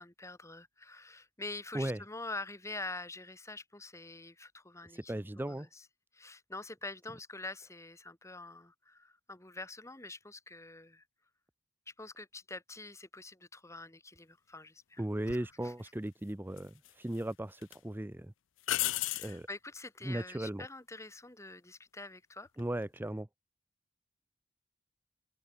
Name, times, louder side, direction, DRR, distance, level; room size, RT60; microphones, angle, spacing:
voice 1, 0.0-5.1 5.5-5.9 6.1-11.0 12.0-15.7 18.9-22.5, left 2 dB, 15° left, 2.5 m, -46 dB
voice 2, 4.9-5.7 15.0-18.3 19.2-19.5 20.0-20.7 22.6-23.3, right 1 dB, 10° right, 0.6 m, -37 dB
sound 1, 15.3-15.5 16.6-17.2 17.6-17.8 18.6-19.4 22.5-22.8, left 15 dB, 80° left, 0.5 m, -34 dB
open air
head